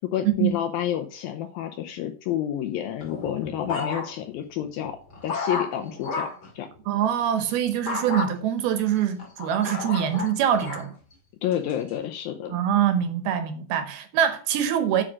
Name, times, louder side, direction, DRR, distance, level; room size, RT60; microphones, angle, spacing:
voice 1, 0.1-5.0 5.2-6.3 6.6-6.7 11.4-12.6, left 11 dB, 80° left, 2.2 m, -29 dB
sound 1, 3.0-4.4 4.8-6.5 7.9-8.3 8.9-10.9 11.5-11.9, left 4 dB, 35° left, 1.9 m, -32 dB
voice 2, 6.9-10.9 12.5-15.0, right 9 dB, 75° right, 2.6 m, -24 dB
8.9 x 4.9 x 6.2 m
omnidirectional pair, 4.8 m